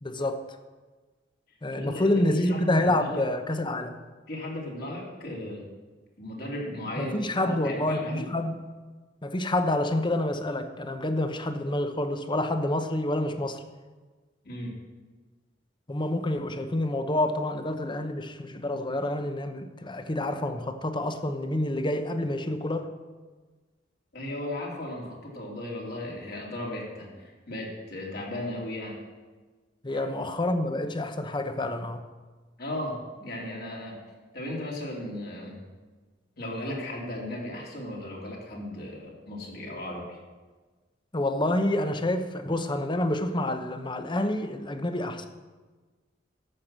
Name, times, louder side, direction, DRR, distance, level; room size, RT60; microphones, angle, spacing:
voice 1, 0.0-0.4 1.6-4.0 7.0-8.6 9.2-13.6 15.9-22.9 29.8-32.0 41.1-45.3, left 1 dB, 25° left, 0.8 m, -28 dB
voice 2, 1.7-3.2 4.3-5.6 6.2-8.3 14.4-14.8 24.1-29.0 29.9-30.0 32.6-34.0 34.3-35.6 36.4-40.2, left 1 dB, 60° left, 3.1 m, -36 dB
13.0 x 5.9 x 7.5 m
head